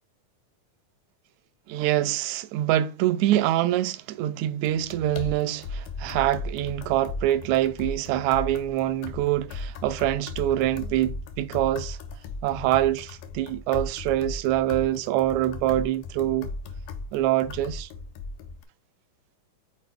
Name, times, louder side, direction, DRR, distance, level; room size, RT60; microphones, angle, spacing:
voice 1, 1.7-12.0 12.4-16.5 17.1-17.9, right 13 dB, 80° right, 1.7 m, -25 dB
sound 1, 4.6-18.6, left 3 dB, 90° left, 2.4 m, -37 dB
6.5 x 4.2 x 3.4 m
omnidirectional pair, 3.7 m